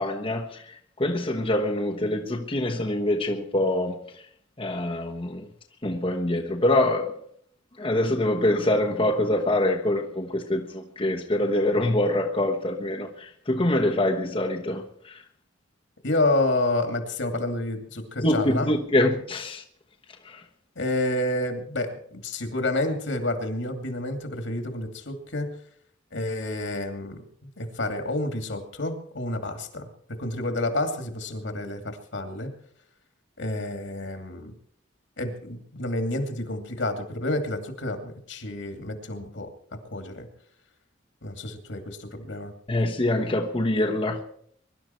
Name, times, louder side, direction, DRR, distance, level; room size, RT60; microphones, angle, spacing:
voice 1, 0.0-4.0 4.6-5.5 5.8-7.1 7.8-15.2 18.2-19.6 20.2-20.4 42.7-44.2, left 1 dB, 30° left, 1.3 m, -25 dB
voice 2, 16.0-18.7 20.8-25.5 26.1-29.9 30.2-32.5 33.4-34.5 35.2-39.5 39.9-40.3 41.2-42.5, left 1 dB, 70° left, 2.7 m, -29 dB
23.0 x 12.0 x 4.5 m
head